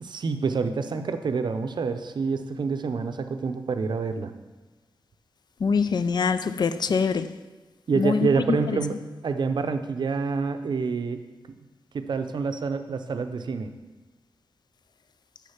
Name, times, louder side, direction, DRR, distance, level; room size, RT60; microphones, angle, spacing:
voice 1, 0.0-4.3 7.9-9.0 9.2-11.2 11.9-13.7, right 5 dB, 60° right, 0.5 m, -27 dB
voice 2, 5.6-7.3 7.9-8.3 8.7-8.8, left 5 dB, 55° left, 0.4 m, -24 dB
6.4 x 6.3 x 5.8 m
wide cardioid pair, 140°, 9 cm